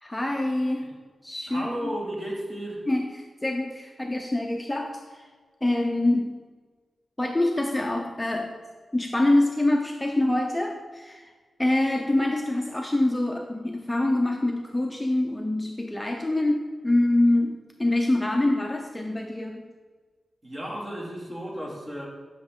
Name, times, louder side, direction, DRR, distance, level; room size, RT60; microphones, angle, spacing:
voice 1, 0.0-0.9 1.2-1.9 2.9-3.1 3.4-5.3 5.6-6.4 7.2-8.5 8.9-11.2 11.6-19.7, left 1 dB, 10° left, 2 dB, 0.6 m, -25 dB
voice 2, 1.5-2.9 20.4-22.1, equal, 30° right, -3 dB, 2.2 m, -34 dB
10.5 x 6.2 x 3.7 m, 1.4 s
wide cardioid pair, 120°, 0 cm